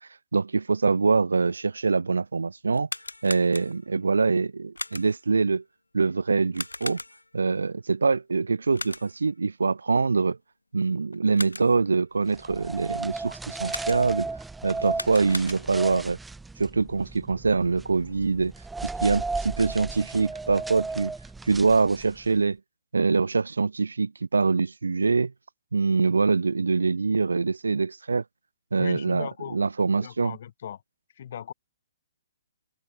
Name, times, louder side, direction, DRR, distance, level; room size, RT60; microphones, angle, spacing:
voice 1, 0.3-2.9 3.2-5.6 5.9-7.0 7.3-10.4 10.7-14.3 14.6-16.2 16.6-18.5 18.8-21.1 21.5-22.6 22.9-25.3 25.7-28.2 28.7-30.4, right 4 dB, 65° right, 0.3 m, -24 dB
sound 1, 2.7-4.0 4.8-5.3 6.5-7.4 8.7-9.3 11.1-11.9 13.7-14.3 14.8-15.9, left 2 dB, 80° left, 4.1 m, -38 dB
sound 2, 12.3-22.3, right 3 dB, 5° right, 2.2 m, -35 dB
voice 2, 28.8-29.6 29.9-30.8 31.2-31.5, left 9 dB, 45° left, 5.9 m, -37 dB
open air
figure-of-eight pair, 125°, 0 cm